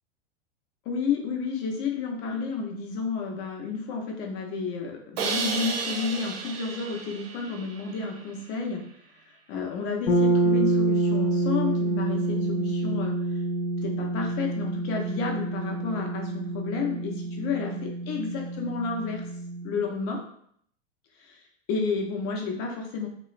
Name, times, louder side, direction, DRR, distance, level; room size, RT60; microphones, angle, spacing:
voice 1, 0.8-8.8 9.5-13.1 13.8-19.2 19.6-20.2 21.2-21.4 21.7-23.1, left 4 dB, 45° left, 2 dB, 0.8 m, -31 dB
Crash cymbal, 5.2-8.2, right 5 dB, 65° right, 0.6 m, -33 dB
sound 1, 10.1-19.9, right 2 dB, 75° left, 0.9 m, -27 dB
3.0 x 2.4 x 3.1 m, 0.66 s
hypercardioid pair, 115°, 32 cm